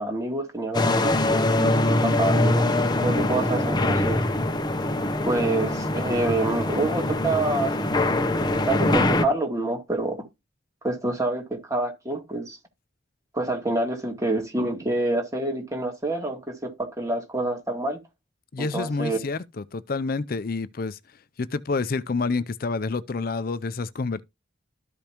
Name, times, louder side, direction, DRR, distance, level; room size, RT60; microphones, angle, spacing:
voice 1, 0.0-4.2 5.2-10.2 10.8-12.6 13.3-18.0 18.6-19.2, right 2 dB, 15° right, 2.0 m, -27 dB
sound 1, 0.7-9.3, left 2 dB, 20° left, 0.8 m, -23 dB
voice 2, 18.5-21.0 21.4-24.2, left 3 dB, 45° left, 0.5 m, -28 dB
13.0 x 5.1 x 3.0 m
head